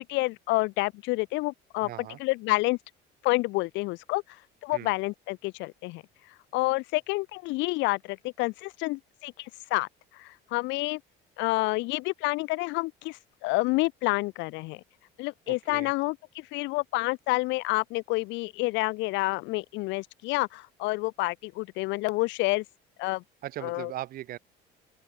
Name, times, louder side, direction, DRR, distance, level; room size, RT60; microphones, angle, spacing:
voice 1, 0.0-1.9 2.2-2.8 3.2-4.2 4.6-6.0 6.5-9.9 10.1-11.0 11.4-14.8 15.2-22.6 23.0-23.2 23.6-23.9, left 23 dB, 85° left, 1.6 m, -29 dB
voice 2, 1.8-2.2 4.7-4.9 15.5-15.9 23.4-24.4, right 14 dB, 50° right, 3.4 m, -39 dB
open air
cardioid pair, 165°, 19 cm